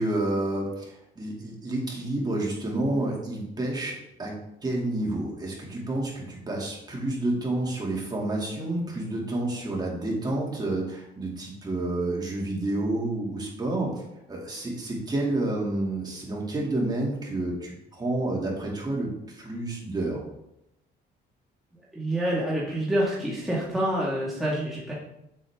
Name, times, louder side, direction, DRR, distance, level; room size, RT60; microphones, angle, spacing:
voice 1, 0.0-4.3 4.6-20.2, right 2 dB, 20° right, -2 dB, 2.5 m, -29 dB
voice 2, 21.9-24.9, right 1 dB, ahead, -7 dB, 1.8 m, -27 dB
7.9 x 7.7 x 3.6 m, 0.81 s
cardioid pair, 135°, 19 cm